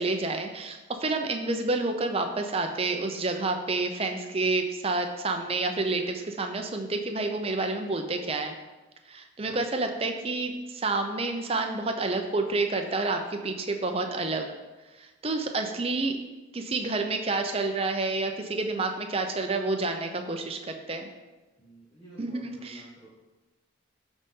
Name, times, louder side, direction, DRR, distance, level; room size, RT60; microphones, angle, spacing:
voice 1, 0.0-8.5 9.1-14.5 15.0-16.2 16.5-21.1 22.2-22.8, right 3 dB, 30° right, 5 dB, 0.6 m, -29 dB
voice 2, 9.4-10.0 21.6-23.1, right 1 dB, 20° left, -8 dB, 1.3 m, -52 dB
12.0 x 4.1 x 3.7 m, 1.2 s
head